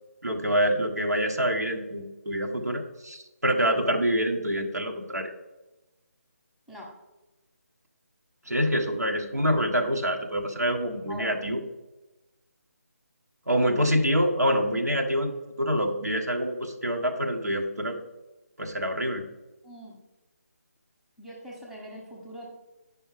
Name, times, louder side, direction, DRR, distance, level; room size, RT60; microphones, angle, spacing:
voice 1, 0.2-5.3 8.4-11.6 13.5-15.3 15.6-17.9 18.6-19.2, equal, 85° right, 3 dB, 1.5 m, -26 dB
voice 2, 19.6-20.0 21.2-22.5, equal, ahead, -4 dB, 1.1 m, -42 dB
8.8 x 5.5 x 4.9 m, 1.1 s
figure-of-eight pair, 155°, 9 cm